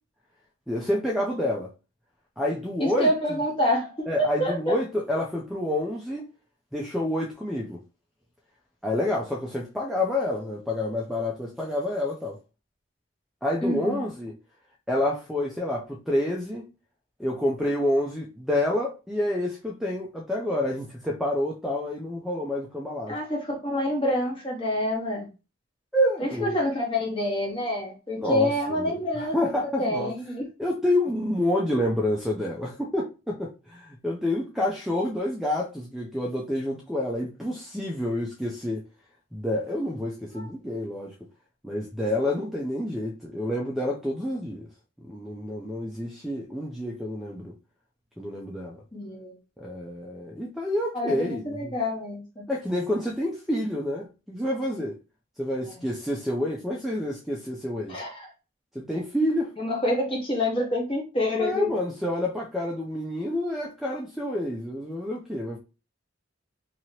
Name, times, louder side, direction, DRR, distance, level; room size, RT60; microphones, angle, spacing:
voice 1, 0.7-1.7 2.4-3.1 4.1-6.3 6.7-7.8 8.8-12.4 13.4-14.3 14.9-16.7 17.2-23.1 25.9-26.6 28.2-30.1 30.6-38.8 39.3-41.1 41.6-44.7 45.1-47.5 48.2-48.8 49.6-51.7 52.5-55.0 55.4-58.0 58.7-59.5 61.4-65.6, left 1 dB, ahead, 0.3 m, -28 dB
voice 2, 2.8-4.8 13.6-14.0 23.1-25.3 26.2-29.5 29.8-30.4 40.3-40.4 48.9-49.4 50.9-52.2 55.8-55.9 57.9-58.3 59.6-61.7, left 1 dB, 25° left, 0.9 m, -27 dB
2.8 x 2.8 x 2.9 m
head